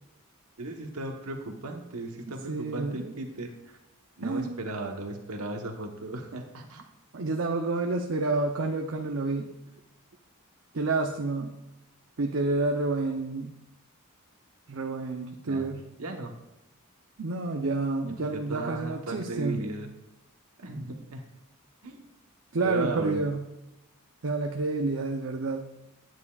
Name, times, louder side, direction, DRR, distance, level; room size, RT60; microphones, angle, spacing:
voice 1, 0.6-3.5 4.2-6.8 15.5-15.7 16.0-16.3 18.2-19.9 20.6-21.2 21.8-22.1 22.6-23.2, right 2 dB, 90° right, 3 dB, 1.1 m, -36 dB
voice 2, 2.5-3.1 4.2-4.6 7.1-9.5 10.7-11.5 12.2-13.5 14.7-15.8 17.2-19.6 22.5-23.4 24.2-25.6, right 3 dB, 65° right, 3 dB, 0.7 m, -29 dB
11.0 x 9.3 x 2.4 m, 0.90 s
head